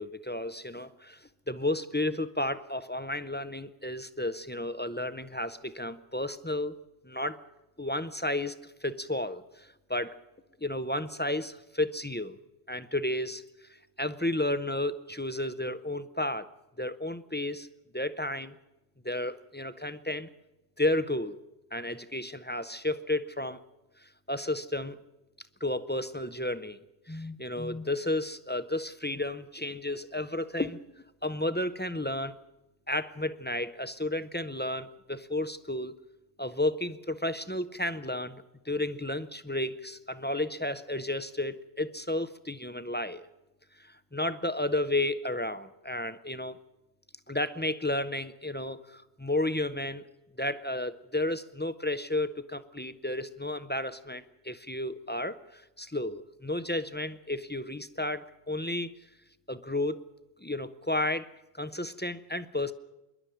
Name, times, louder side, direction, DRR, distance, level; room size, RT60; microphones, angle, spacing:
voice 1, 0.0-6.8 7.0-7.4 7.8-10.2 10.6-12.4 12.7-13.4 14.0-16.5 16.8-17.7 17.9-18.5 19.0-20.3 20.8-21.4 21.7-23.6 24.0-25.0 25.6-26.8 27.1-30.8 31.2-32.3 32.9-36.0 36.4-43.3 43.8-46.6 47.3-50.0 50.4-58.9 59.5-60.0 60.4-61.3 61.6-62.7, left 1 dB, 15° left, 12 dB, 0.4 m, -32 dB
26.0 x 11.5 x 9.2 m, 0.97 s
omnidirectional pair, 1.3 m